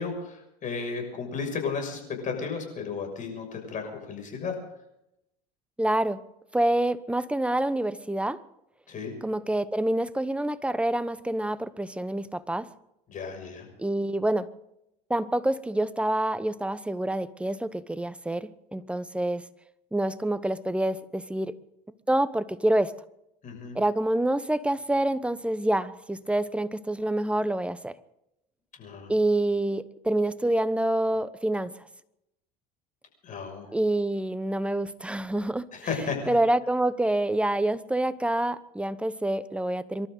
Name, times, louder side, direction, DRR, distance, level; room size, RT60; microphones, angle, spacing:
voice 1, 0.0-4.5 8.9-9.1 13.1-13.7 23.4-23.8 28.8-29.1 33.2-33.8 35.7-36.4, left 5 dB, 45° left, 4 dB, 6.4 m, -34 dB
voice 2, 5.8-6.2 6.5-8.4 9.2-12.7 13.8-14.5 15.1-19.5 19.9-21.6 22.1-22.9 23.7-27.9 29.1-31.7 33.7-35.7 36.3-40.1, right 1 dB, 5° right, 14 dB, 0.9 m, -27 dB
26.5 x 12.5 x 3.9 m, 0.82 s
supercardioid pair, 95°, 19 cm